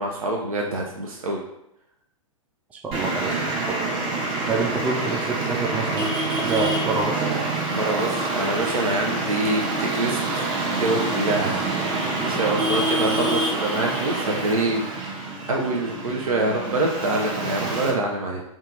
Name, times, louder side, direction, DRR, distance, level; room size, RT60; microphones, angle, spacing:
voice 1, 0.0-1.4 7.7-11.7 12.3-14.8 15.5-18.4, right 2 dB, 85° right, 0 dB, 0.5 m, -25 dB
voice 2, 2.8-3.8 4.5-7.2, right 3 dB, 10° right, 1 dB, 0.3 m, -27 dB
Traffic noise roadway noise, 2.9-17.9, right 2 dB, 30° right, 0.7 m, -26 dB
2.7 x 2.3 x 3.8 m, 0.82 s
figure-of-eight pair, 110°, 18 cm